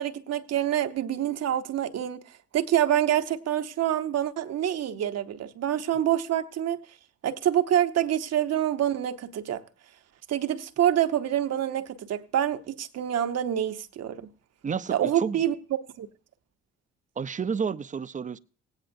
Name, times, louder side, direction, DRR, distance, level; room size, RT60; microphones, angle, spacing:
voice 1, 0.0-2.2 2.5-6.8 7.2-9.6 10.3-14.3 14.9-15.5 16.0-16.1, right 11 dB, 55° right, 0.9 m, -26 dB
voice 2, 14.6-15.4 17.2-18.4, right 6 dB, 25° right, 0.5 m, -31 dB
18.0 x 8.9 x 2.6 m
hypercardioid pair, 50°, 30 cm